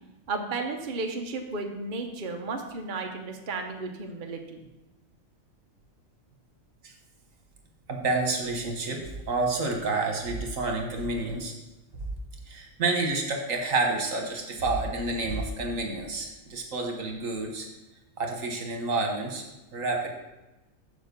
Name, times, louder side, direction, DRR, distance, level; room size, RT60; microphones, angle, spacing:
voice 1, 0.3-4.6, right 3 dB, 40° right, 3 dB, 1.0 m, -33 dB
voice 2, 7.9-11.5 12.5-17.7 18.2-19.4 19.7-20.1, right 3 dB, 75° right, 2 dB, 1.7 m, -29 dB
7.2 x 5.0 x 6.8 m, 1.0 s
omnidirectional pair, 1.4 m